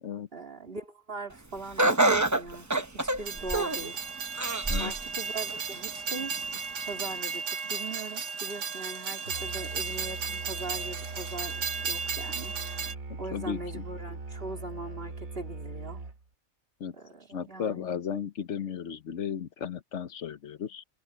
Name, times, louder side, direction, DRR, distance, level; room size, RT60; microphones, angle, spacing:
voice 1, 0.3-4.1 4.8-6.4 6.9-12.9 13.2-16.0 16.9-17.9, right 2 dB, 40° right, 3.4 m, -41 dB
Laughter, 1.8-3.9 4.4-5.0 5.5-5.6 6.6-6.7, right 2 dB, 15° right, 0.8 m, -26 dB
Train, 3.2-12.9, right 5 dB, 60° right, 1.5 m, -35 dB
Musical instrument, 9.2-16.3, right 3 dB, 75° right, 2.7 m, -41 dB
voice 2, 13.3-13.8 16.8-16.9 17.3-20.8, left 8 dB, 60° left, 1.2 m, -35 dB
omnidirectional pair, 1.5 m